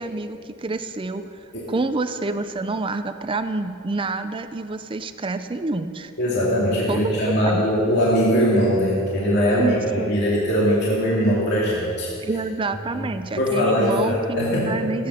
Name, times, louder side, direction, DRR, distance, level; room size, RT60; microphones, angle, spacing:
voice 1, 0.0-6.1 6.9-7.0 7.4-7.7 9.6-10.1 12.2-15.1, right 3 dB, 25° right, 9 dB, 0.5 m, -28 dB
voice 2, 6.2-12.1 12.9-13.1 13.4-14.8, equal, 55° left, -6 dB, 2.6 m, -21 dB
17.0 x 8.6 x 6.3 m, 2.7 s
head